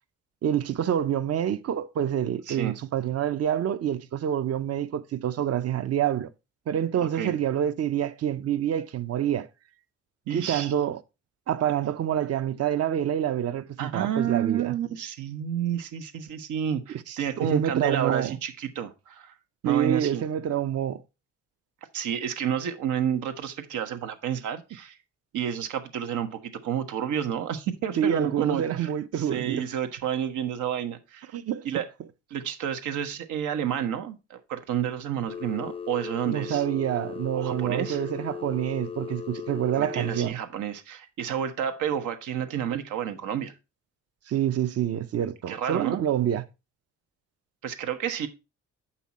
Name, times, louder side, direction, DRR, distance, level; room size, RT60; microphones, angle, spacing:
voice 1, 0.4-6.3 6.7-9.5 10.3-11.0 11.5-14.8 17.1-18.4 19.6-21.0 28.0-29.7 31.3-31.7 36.3-40.4 44.3-46.4, right 10 dB, 55° right, 0.7 m, -27 dB
voice 2, 7.0-7.3 10.3-10.7 13.8-19.3 19.6-20.2 21.9-24.9 25.3-31.3 31.6-31.9 32.3-36.6 37.3-38.0 39.7-43.5 45.5-46.0 47.6-48.3, right 9 dB, 85° right, 1.2 m, -30 dB
Telephone, 35.3-40.3, left 7 dB, 20° left, 0.5 m, -37 dB
7.4 x 5.6 x 4.2 m
cardioid pair, 90°, 30 cm